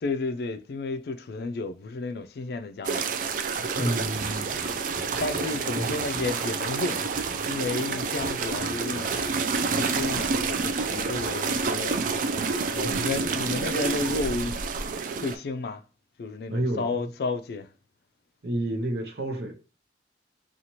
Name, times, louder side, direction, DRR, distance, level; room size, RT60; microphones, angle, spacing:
voice 1, 0.0-3.0 3.6-4.1 5.2-7.0 7.5-9.3 9.6-12.0 12.7-14.6 15.0-15.8 16.2-17.7, left 3 dB, 60° left, 0.3 m, -32 dB
sound 1, 2.8-15.4, right 4 dB, 50° right, 0.3 m, -28 dB
voice 2, 3.8-4.5 5.8-5.9 12.7-13.1 16.5-16.9 18.4-19.5, right 1 dB, 65° right, 0.7 m, -30 dB
sound 2, 4.1-12.1, equal, 30° left, 0.9 m, -44 dB
2.8 x 2.4 x 2.9 m
head